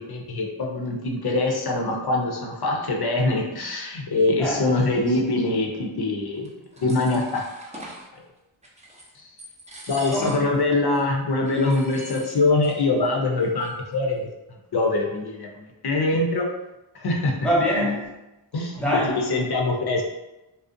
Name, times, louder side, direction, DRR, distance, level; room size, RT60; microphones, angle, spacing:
voice 1, 0.0-6.5 6.8-7.4 7.7-7.8 9.2-9.3 9.9-14.3 14.7-16.5 16.9-17.3 18.5-18.8 19.3-20.0, left 2 dB, 55° left, 1 dB, 0.6 m, -23 dB
voice 2, 4.4-5.2 10.1-10.5 17.4-18.1 18.8-19.3, equal, ahead, -5 dB, 0.9 m, -25 dB
sound 1, 6.5-8.1 8.6-9.1 9.4-10.6 10.9-11.0 11.4-12.8 13.1-13.2 13.4-13.9, right 1 dB, 15° right, 0.6 m, -42 dB
2.5 x 2.0 x 2.6 m, 0.98 s
cardioid pair, 40°, 48 cm